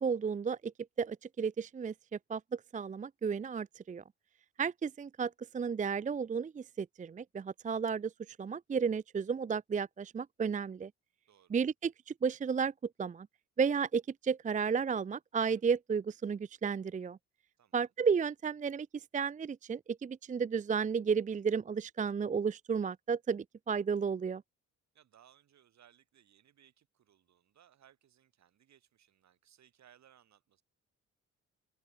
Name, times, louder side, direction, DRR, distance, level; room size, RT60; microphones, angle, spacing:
voice 1, 0.0-0.7 1.0-1.9 2.3-4.0 4.6-10.9 11.5-12.7 13.0-13.3 13.6-17.2 17.7-24.4, right 6 dB, 25° right, 0.5 m, -33 dB
voice 2, 17.6-17.9 24.9-30.6, right 10 dB, 65° right, 5.9 m, -65 dB
open air
cardioid pair, 90°, 30 cm